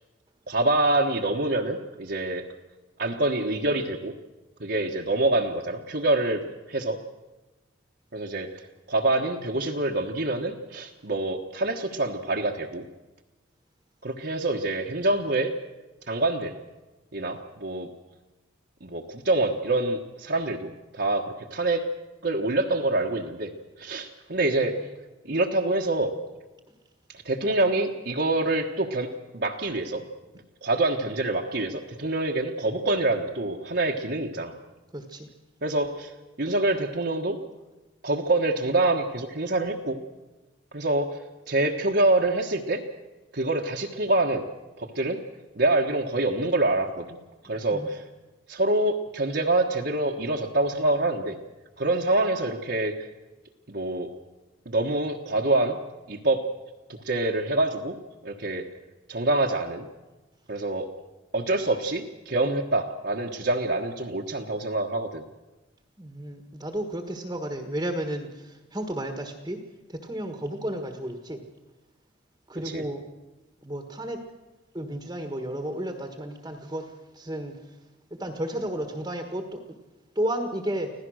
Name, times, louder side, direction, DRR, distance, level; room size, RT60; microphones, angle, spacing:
voice 1, 0.5-2.4 3.0-4.1 4.6-6.4 6.7-7.0 8.1-8.6 8.9-12.8 14.0-15.5 16.1-16.5 17.1-17.9 18.8-21.8 22.2-23.5 23.8-24.7 25.2-26.1 27.2-30.0 30.6-34.5 35.6-37.4 38.0-40.0 40.7-41.1 41.5-42.8 43.3-44.4 44.8-45.2 45.6-47.2 47.4-48.0 48.5-51.4 51.8-53.0 53.7-54.1 54.6-55.8 56.1-56.4 56.9-58.0 58.2-58.6 59.1-59.9 60.5-60.9 61.3-65.2 72.6-72.9, right 2 dB, 55° right, -1 dB, 1.4 m, -26 dB
voice 2, 24.4-24.7 34.9-35.3 47.5-47.9 66.0-69.6 69.9-71.4 72.5-73.0 73.6-74.2 74.7-77.6 78.2-79.6 80.1-80.9, right 1 dB, 20° right, 5 dB, 1.5 m, -33 dB
25.5 x 16.5 x 6.4 m, 1.1 s
head